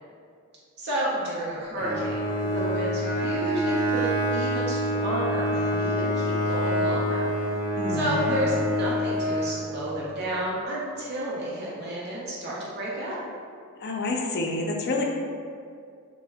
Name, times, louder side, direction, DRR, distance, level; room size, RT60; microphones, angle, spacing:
voice 1, 0.8-7.3 7.9-13.2, right 1 dB, 50° right, -6 dB, 0.6 m, -31 dB
Bowed string instrument, 1.8-10.0, equal, 10° right, 0.9 m, -26 dB
voice 2, 7.8-8.3 13.8-15.0, left 2 dB, 50° left, 0 dB, 0.4 m, -28 dB
3.3 x 2.1 x 3.4 m, 2.2 s
head